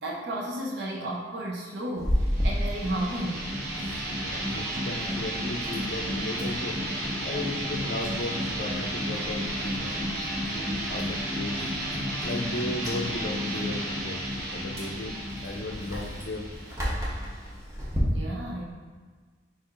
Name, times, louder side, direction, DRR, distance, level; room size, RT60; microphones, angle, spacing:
voice 1, 0.0-3.5 18.1-18.6, right 1 dB, 70° right, -2 dB, 0.6 m, -33 dB
Chewing mastication, 2.0-18.0, equal, 15° right, 0.8 m, -36 dB
sound 1, 2.2-17.6, equal, 55° right, 0.9 m, -32 dB
voice 2, 4.3-6.8 7.2-10.1 10.5-11.6 12.2-14.2 14.5-15.1 15.4-16.5, left 2 dB, 55° left, 3 dB, 0.4 m, -35 dB
4.6 x 4.3 x 2.4 m, 1.5 s
head